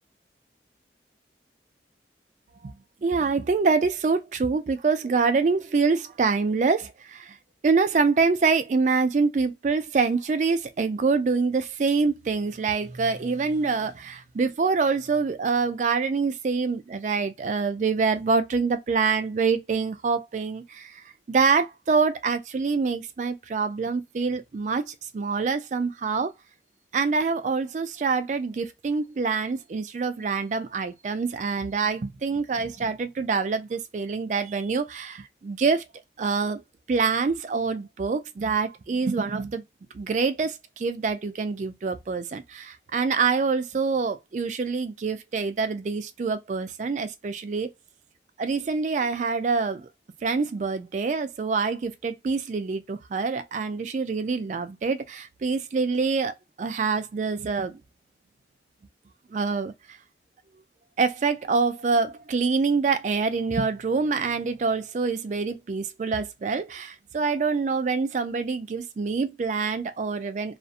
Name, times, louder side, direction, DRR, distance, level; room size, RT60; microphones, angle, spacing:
voice 1, 3.0-7.4 7.6-21.0 21.3-26.3 26.9-35.8 36.2-36.6 36.9-39.6 39.9-47.7 48.4-49.9 50.2-57.8 59.3-59.7 61.0-70.6, right 4 dB, 40° right, 0.3 m, -25 dB
2.4 x 2.0 x 2.6 m
head